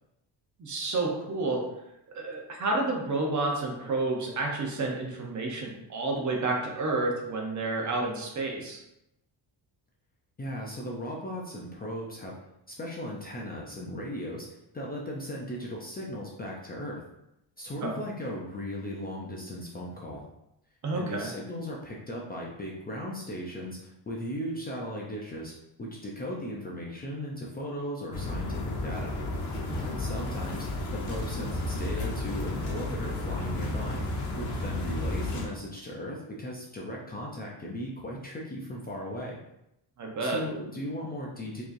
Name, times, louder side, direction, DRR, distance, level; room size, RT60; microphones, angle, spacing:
voice 1, 0.6-1.6 2.1-8.8 17.8-18.0 20.8-21.3 29.7-29.9 40.0-40.4, right 2 dB, 40° right, 0 dB, 0.8 m, -30 dB
voice 2, 10.4-12.4 12.7-17.0 17.6-20.2 20.9-25.5 25.8-29.2 29.8-30.7 30.9-34.1 34.4-39.4 40.2-41.6, equal, 20° left, -3 dB, 0.5 m, -37 dB
sound 1, 28.1-35.5, left 2 dB, 85° left, 1.1 m, -32 dB
4.7 x 2.9 x 2.6 m, 0.84 s
cardioid pair, 145°, 45 cm